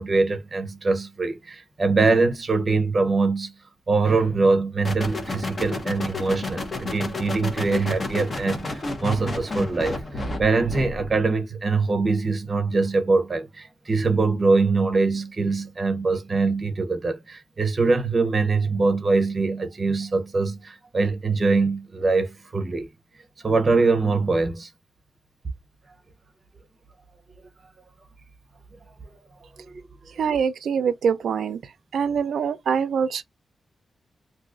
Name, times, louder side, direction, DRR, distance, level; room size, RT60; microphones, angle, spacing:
voice 1, 0.0-3.5 3.9-22.9 23.4-24.7 29.7-29.8, right 3 dB, 35° right, 0.6 m, -23 dB
sound 1, 4.8-11.2, left 2 dB, 35° left, 0.7 m, -31 dB
voice 2, 30.2-31.6 31.9-33.2, right 7 dB, 80° right, 0.4 m, -24 dB
2.6 x 2.4 x 3.7 m
wide cardioid pair, 140°, 0 cm